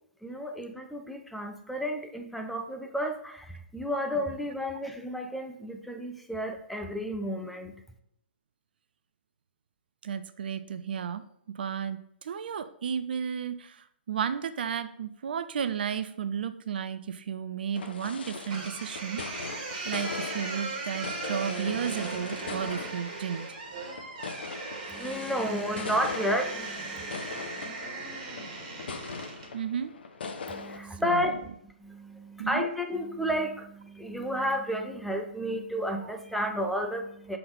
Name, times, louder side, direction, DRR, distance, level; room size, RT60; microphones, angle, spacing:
voice 1, 0.2-7.8 24.9-27.1 30.5-31.3 31.6-37.4, equal, ahead, 4 dB, 0.6 m, -32 dB
voice 2, 10.0-11.2 11.5-19.5 19.8-23.4 29.5-29.9 31.0-31.3 32.4-32.7, right 7 dB, 55° right, 11 dB, 0.5 m, -33 dB
sound 1, 17.7-30.8, left 4 dB, 60° left, 0.8 m, -40 dB
sound 2, 18.5-29.5, right 3 dB, 40° right, 1.9 m, -38 dB
5.6 x 4.2 x 5.2 m, 0.71 s
figure-of-eight pair, 120°, 6 cm